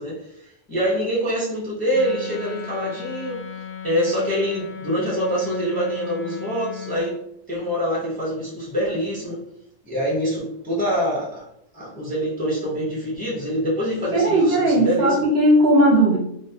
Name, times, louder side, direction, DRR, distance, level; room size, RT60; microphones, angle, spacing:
voice 1, 0.0-3.4 3.8-7.2 7.5-9.4 9.8-11.5 11.7-15.2, equal, 10° left, -6 dB, 0.4 m, -25 dB
Wind instrument woodwind instrument, 1.9-7.1, left 7 dB, 85° left, 0.3 m, -36 dB
voice 2, 14.1-16.2, right 1 dB, 65° right, -1 dB, 0.7 m, -17 dB
2.5 x 2.1 x 2.6 m, 0.73 s
omnidirectional pair, 1.3 m